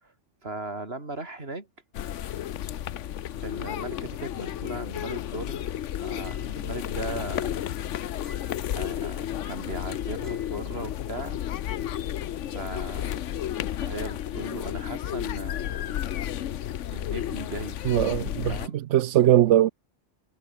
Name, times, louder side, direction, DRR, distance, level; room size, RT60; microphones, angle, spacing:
voice 1, 0.4-1.7 3.4-7.6 8.7-11.4 12.5-13.2 13.8-16.1 16.9-17.8 18.5-18.8, right 2 dB, 55° right, 4.0 m, -38 dB
sound 1, 1.9-18.7, left 11 dB, 90° left, 1.1 m, -32 dB
sound 2, 6.2-6.8 8.2-8.9 10.2-10.8, equal, ahead, 3.3 m, -53 dB
voice 2, 17.9-19.7, right 13 dB, 85° right, 0.9 m, -21 dB
omnidirectional pair, 1.2 m